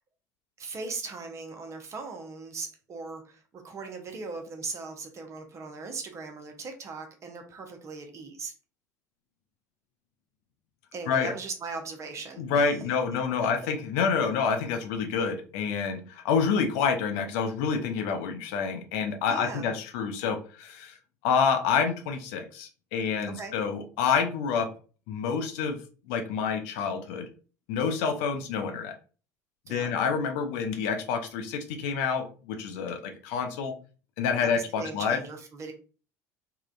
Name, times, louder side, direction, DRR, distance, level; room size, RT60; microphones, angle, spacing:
voice 1, 0.6-8.5 10.9-12.8 19.2-19.7 23.4-23.5 29.7-29.9 34.4-35.7, right 4 dB, 30° right, 5 dB, 0.7 m, -39 dB
voice 2, 12.4-21.0 21.2-24.7 25.1-25.8 26.1-27.3 27.7-28.9 29.7-33.7 34.2-35.2, left 6 dB, 55° left, 5 dB, 0.5 m, -28 dB
3.6 x 2.2 x 2.4 m, 0.37 s
figure-of-eight pair, 65°, 9 cm